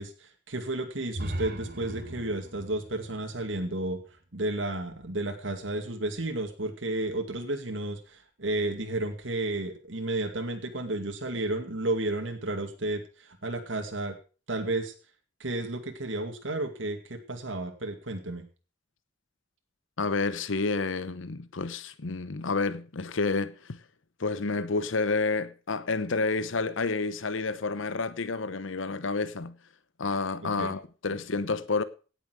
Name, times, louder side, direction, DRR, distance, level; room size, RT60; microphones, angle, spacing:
voice 1, 0.0-4.0 4.3-14.1 14.5-14.9 15.4-18.4 30.6-30.7, right 2 dB, 80° right, 2.2 m, -32 dB
sound 1, 1.1-5.0, right 1 dB, 50° right, 1.4 m, -39 dB
voice 2, 20.0-23.8 24.2-29.6 30.0-31.8, left 3 dB, 85° left, 0.9 m, -29 dB
17.5 x 7.1 x 6.2 m
head